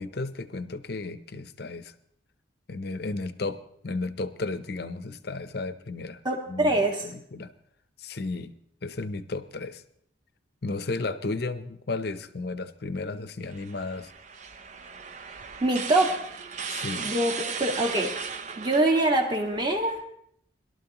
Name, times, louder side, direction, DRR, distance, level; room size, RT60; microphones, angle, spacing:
voice 1, 0.0-1.9 2.7-6.2 6.5-7.5 8.0-8.5 8.8-9.8 10.6-14.1 16.7-17.1, left 3 dB, 55° left, 12 dB, 0.7 m, -34 dB
voice 2, 6.2-7.1 15.6-16.1 17.0-18.1 18.6-20.0, right 2 dB, 25° right, 1 dB, 1.7 m, -24 dB
sound 1, 13.5-20.0, right 6 dB, 40° right, 0.6 m, -37 dB
22.0 x 12.0 x 3.0 m, 0.68 s
head